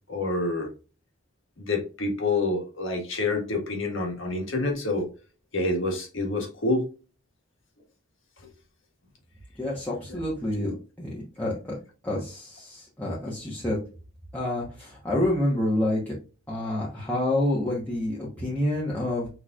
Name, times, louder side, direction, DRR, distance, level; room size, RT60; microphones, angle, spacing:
voice 1, 0.1-0.7 1.6-5.1 5.5-6.8 10.1-10.2, left 2 dB, 65° left, 2 dB, 1.7 m, -27 dB
voice 2, 9.6-11.7 12.0-13.8 14.3-16.1 16.5-19.3, left 1 dB, 10° left, -7 dB, 1.2 m, -28 dB
6.3 x 3.3 x 2.5 m, 0.34 s
head